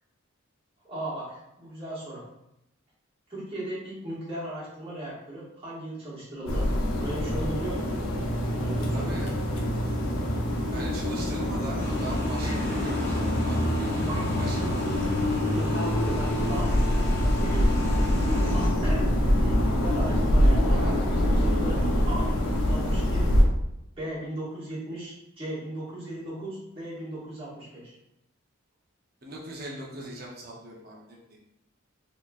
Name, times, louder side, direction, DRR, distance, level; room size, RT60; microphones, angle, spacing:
voice 1, 0.8-2.2 3.3-6.6 7.0-8.0 8.6-9.1 12.4-12.6 14.0-14.7 15.5-17.7 18.5-19.1 19.4-21.8 22.1-23.3 24.0-27.9, right 1 dB, 30° right, -9 dB, 1.5 m, -37 dB
sound 1, 6.5-23.4, equal, 90° left, 0.7 m, -25 dB
voice 2, 8.9-9.9 10.7-14.8 18.6-18.8 29.2-31.2, right 1 dB, 45° right, -3 dB, 0.8 m, -40 dB
sound 2, 11.8-18.7, left 3 dB, 15° left, 1.0 m, -39 dB
4.2 x 2.9 x 2.5 m, 0.84 s
head